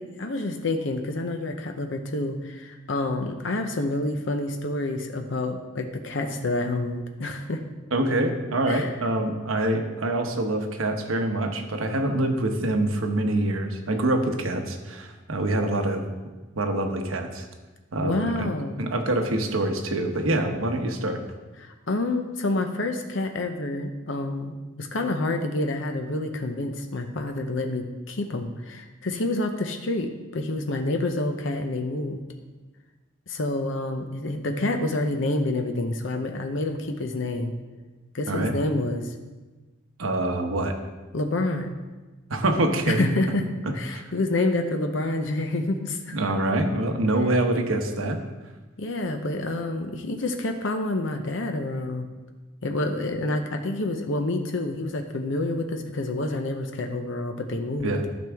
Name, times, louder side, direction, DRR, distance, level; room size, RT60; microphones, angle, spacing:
voice 1, 0.0-7.6 8.7-8.9 18.0-18.8 21.6-32.2 33.3-37.5 38.1-39.1 41.1-41.8 42.9-43.4 43.7-46.2 48.8-52.1 52.6-57.9, left 2 dB, 65° left, 5 dB, 0.7 m, -28 dB
voice 2, 7.9-16.0 16.6-17.5 17.9-18.5 18.8-21.2 38.3-38.5 40.0-40.7 42.3-43.1 43.6-44.1 46.1-48.2 57.8-58.0, right 1 dB, 85° right, 5 dB, 1.0 m, -25 dB
12.0 x 6.1 x 3.5 m, 1.2 s
head